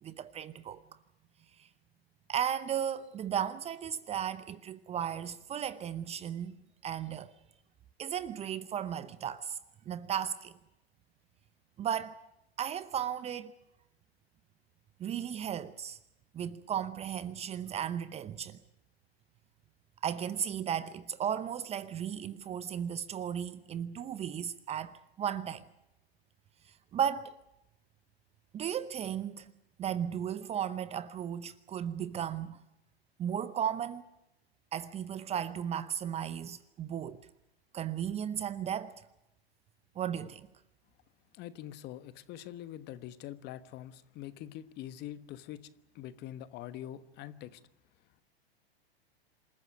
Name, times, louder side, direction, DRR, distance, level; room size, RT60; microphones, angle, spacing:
voice 1, 0.0-0.8 1.6-1.7 2.3-6.6 6.8-7.3 8.0-9.6 9.9-10.6 11.8-12.2 12.6-13.5 15.0-16.0 16.3-18.6 20.0-25.6 26.9-27.4 28.5-29.5 29.8-32.6 33.2-34.0 34.7-37.2 37.7-39.0 40.0-40.5, right 9 dB, 20° right, 0.8 m, -35 dB
voice 2, 41.3-47.6, left 12 dB, 30° left, 1.3 m, -44 dB
27.5 x 14.0 x 9.2 m
hypercardioid pair, 115°, 32 cm